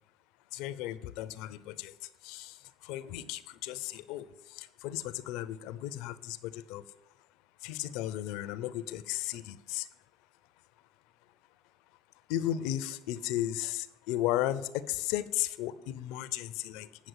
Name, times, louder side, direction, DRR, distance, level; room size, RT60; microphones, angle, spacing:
voice 1, 0.5-1.9 2.2-6.8 7.6-9.9 12.3-16.9, left 13 dB, 75° left, 14 dB, 0.7 m, -35 dB
9.4 x 6.1 x 8.0 m, 0.87 s
supercardioid pair, 90°, 0 cm